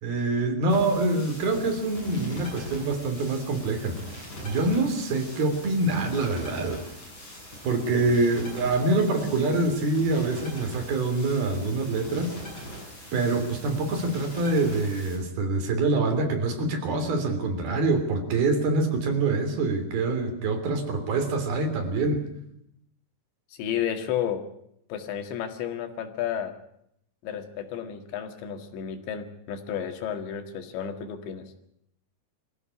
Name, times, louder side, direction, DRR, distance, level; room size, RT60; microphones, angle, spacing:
voice 1, 0.0-6.8 7.6-12.4 13.1-22.2, right 3 dB, 60° right, 6 dB, 4.9 m, -25 dB
sound 1, 0.7-15.2, equal, 25° left, 8.5 m, -42 dB
voice 2, 23.5-24.4 24.9-26.5 27.2-31.5, left 9 dB, 85° left, 7 dB, 4.2 m, -32 dB
24.0 x 15.0 x 9.9 m, 0.75 s
omnidirectional pair, 5.0 m